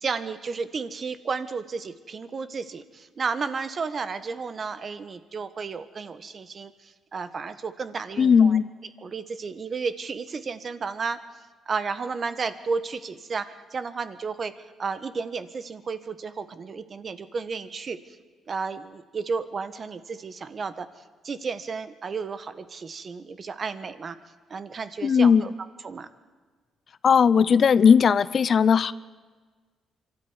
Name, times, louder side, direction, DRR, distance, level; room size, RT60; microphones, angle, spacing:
voice 1, 0.0-8.6 9.0-11.2 11.7-18.2 18.5-20.9 21.2-24.2 24.5-25.5 25.8-26.1, right 5 dB, 45° right, 1.4 m, -32 dB
voice 2, 8.2-8.7 25.0-25.4 27.0-28.9, left 6 dB, 50° left, 0.6 m, -18 dB
24.5 x 12.5 x 9.7 m
cardioid pair, 90°, 0 cm